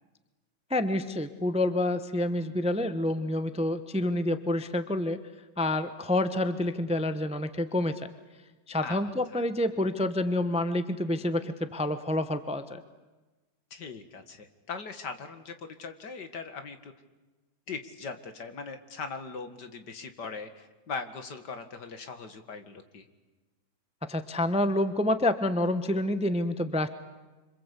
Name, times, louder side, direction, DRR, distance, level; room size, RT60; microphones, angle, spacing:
voice 1, 0.7-5.2 5.6-8.0 8.7-12.8 24.1-26.9, left 1 dB, 5° right, 10 dB, 0.8 m, -28 dB
voice 2, 8.8-9.4 13.7-16.9 17.7-23.1, left 4 dB, 70° left, 8 dB, 2.5 m, -40 dB
26.5 x 26.0 x 8.4 m, 1.2 s
omnidirectional pair, 1.9 m